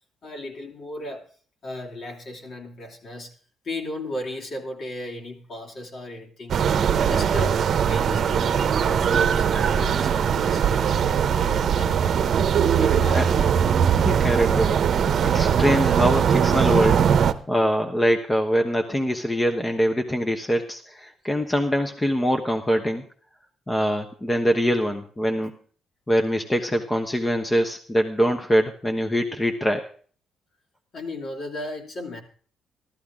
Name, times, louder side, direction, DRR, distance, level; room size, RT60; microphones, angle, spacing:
voice 1, 0.2-1.3 1.6-3.3 3.6-12.2 12.8-13.5 30.9-32.2, left 1 dB, 55° left, 1 dB, 3.1 m, -36 dB
sound 1, 6.5-17.3, right 8 dB, 60° right, 0.8 m, -20 dB
voice 2, 14.0-14.8 15.2-17.0 17.5-23.0 23.7-25.5 26.1-29.8, equal, 15° left, 4 dB, 1.1 m, -23 dB
14.0 x 13.0 x 3.7 m, 0.44 s
cardioid pair, 90°, 0 cm